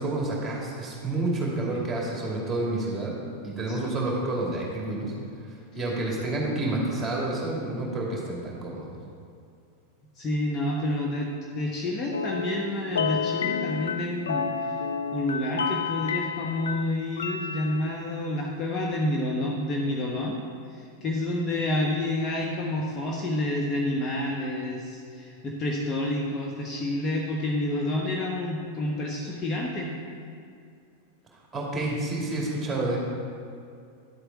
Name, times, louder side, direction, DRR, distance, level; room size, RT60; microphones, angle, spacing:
voice 1, 0.0-3.1 3.4-5.1 5.7-8.9 31.5-33.0, right 2 dB, 10° right, -3 dB, 2.6 m, -29 dB
voice 2, 10.2-14.8 15.1-20.4 20.7-29.9, left 1 dB, 25° left, -1 dB, 1.1 m, -29 dB
sound 1, 12.1-18.1, left 6 dB, 65° left, 0.4 m, -31 dB
11.0 x 7.9 x 3.8 m, 2.3 s
figure-of-eight pair, 90°, 0 cm